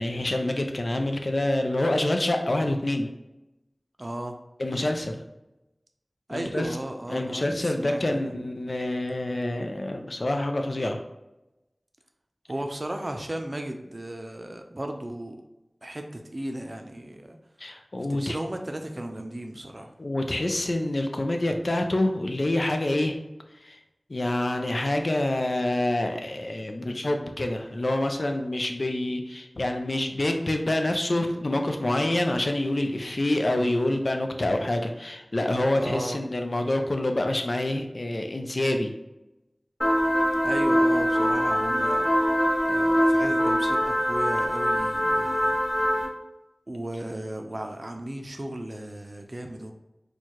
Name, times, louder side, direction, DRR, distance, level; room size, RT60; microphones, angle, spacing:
voice 1, 0.0-3.1 4.6-5.2 6.3-6.8 7.1-11.0 17.6-18.4 20.0-23.2 23.6-23.8 24.1-38.9, left 1 dB, 60° left, 4 dB, 0.4 m, -27 dB
voice 2, 4.0-4.4 6.3-8.3 12.5-15.4 15.8-17.4 18.1-19.9 35.8-36.2 40.4-42.3 42.6-45.6 46.7-49.7, right 1 dB, 40° right, 4 dB, 0.5 m, -35 dB
sound 1, 39.8-46.1, equal, 35° left, 1.1 m, -23 dB
4.5 x 2.3 x 2.9 m, 0.94 s
wide cardioid pair, 55°, 0 cm